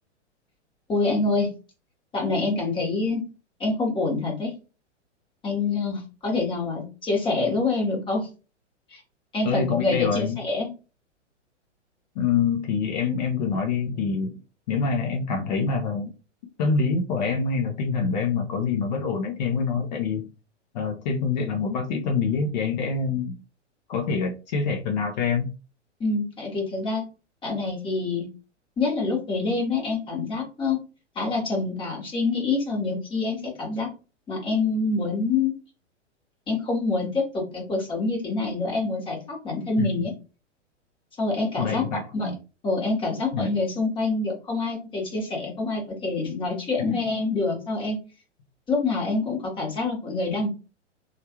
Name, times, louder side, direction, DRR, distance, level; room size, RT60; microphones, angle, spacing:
voice 1, 0.9-1.5 2.1-3.2 3.6-4.5 5.4-8.3 8.9-9.0 9.3-10.7 26.0-27.0 27.4-28.3 28.8-30.8 31.1-33.9 34.3-35.5 36.5-40.1 41.2-41.8 42.1-42.3 42.6-48.0 48.7-50.5, left 3 dB, 15° left, -2 dB, 1.1 m, -26 dB
voice 2, 9.4-10.4 12.2-14.4 14.7-16.1 16.6-20.3 20.7-23.4 23.9-25.5 39.8-39.9 41.6-42.4 43.3-43.5 46.9-47.0, left 5 dB, 35° left, 3 dB, 0.6 m, -26 dB
3.1 x 2.4 x 2.8 m, 0.32 s
figure-of-eight pair, 115°, 37 cm